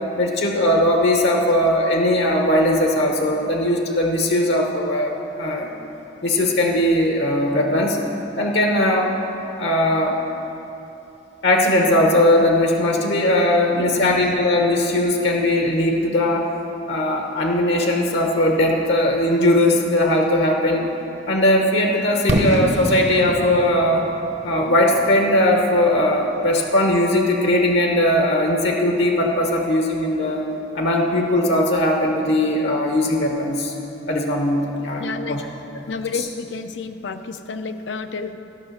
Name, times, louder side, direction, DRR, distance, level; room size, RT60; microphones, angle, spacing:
voice 1, 0.2-5.7 6.2-8.0 8.4-9.1 9.6-10.2 11.4-16.5 16.9-20.9 21.3-24.1 24.4-30.4 30.7-33.7 34.1-35.4 35.8-36.2, left 1 dB, 70° left, 1 dB, 1.0 m, -19 dB
voice 2, 13.7-14.3 35.0-35.4 35.9-38.3, left 4 dB, 85° left, 9 dB, 0.6 m, -30 dB
Fireworks, 22.3-26.2, equal, 40° right, 0.8 m, -26 dB
13.0 x 6.0 x 6.6 m, 2.9 s
head